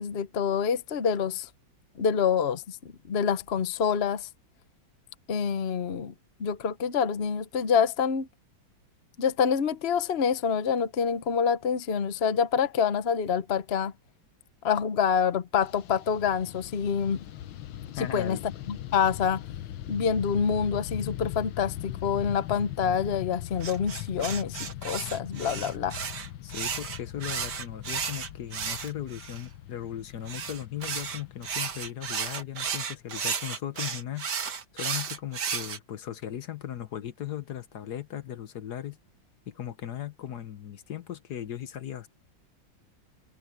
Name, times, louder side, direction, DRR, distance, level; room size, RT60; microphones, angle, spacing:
voice 1, 0.0-1.5 2.0-2.7 3.1-4.3 5.3-6.1 6.4-8.3 9.2-13.9 14.6-17.2 18.1-18.4 18.7-19.4 19.9-26.0, left 7 dB, 45° left, 0.9 m, -26 dB
Fixed-wing aircraft airplane, 15.6-33.0, left 12 dB, 85° left, 1.6 m, -40 dB
voice 2, 18.0-18.4 26.4-34.3 34.7-39.0 39.5-42.1, left 11 dB, 60° left, 1.4 m, -37 dB
sound 1, 23.6-29.4 30.3-35.8, right 6 dB, 60° right, 2.2 m, -33 dB
omnidirectional pair, 2.1 m